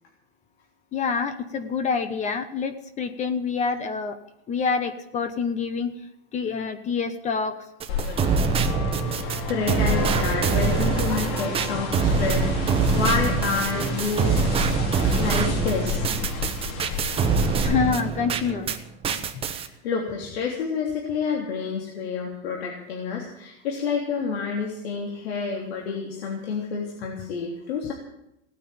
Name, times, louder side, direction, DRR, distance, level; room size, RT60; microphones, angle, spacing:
voice 1, 0.9-4.2 4.5-5.9 6.3-7.6 17.6-18.7 19.3-19.4, left 5 dB, 25° left, 10 dB, 1.1 m, -27 dB
sound 1, 7.8-18.8 19.0-19.7, right 5 dB, 20° right, 1.2 m, -24 dB
sound 2, 7.9-17.6, left 4 dB, 50° left, 4.3 m, -32 dB
voice 2, 9.1-14.3 14.9-16.0 19.5-27.9, left 5 dB, 90° left, 0 dB, 3.5 m, -29 dB
17.5 x 9.2 x 8.7 m, 0.81 s
supercardioid pair, 160°, 30 cm